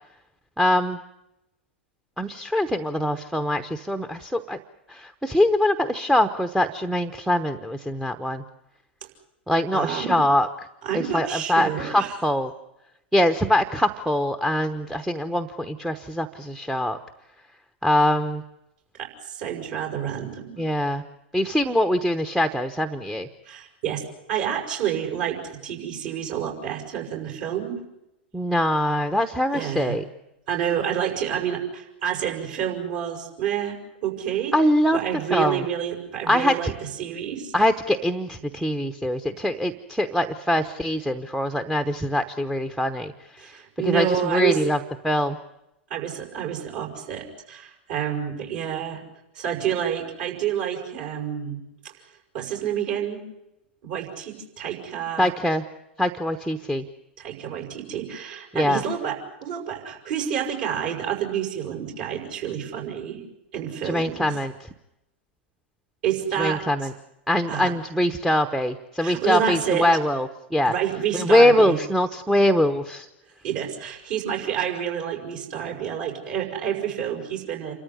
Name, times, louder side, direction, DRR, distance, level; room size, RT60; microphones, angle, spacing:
voice 1, 0.6-1.0 2.2-4.6 4.9-8.4 9.5-10.5 10.9-12.5 13.1-17.0 17.8-18.4 20.6-21.0 21.3-23.3 28.3-30.0 34.5-35.0 35.3-35.6 36.3-36.7 37.5-43.5 43.8-44.8 45.0-45.4 55.2-55.6 56.0-56.8 58.5-58.8 63.8-64.5 66.4-66.9 67.3-70.7 71.1-73.1, left 1 dB, 5° right, 8 dB, 1.0 m, -23 dB
voice 2, 9.7-10.2 10.8-12.1 19.0-20.6 23.4-24.0 24.3-27.8 29.5-30.0 30.5-34.6 34.9-36.7 37.0-37.5 43.4-44.6 45.9-49.0 49.3-51.6 52.3-53.2 53.8-55.3 57.2-63.2 63.5-64.3 66.0-66.6 67.5-67.7 69.0-69.8 70.6-71.8 73.4-77.7, right 9 dB, 55° right, 2 dB, 6.2 m, -28 dB
28.5 x 14.0 x 9.8 m, 0.90 s
figure-of-eight pair, 95°, 6 cm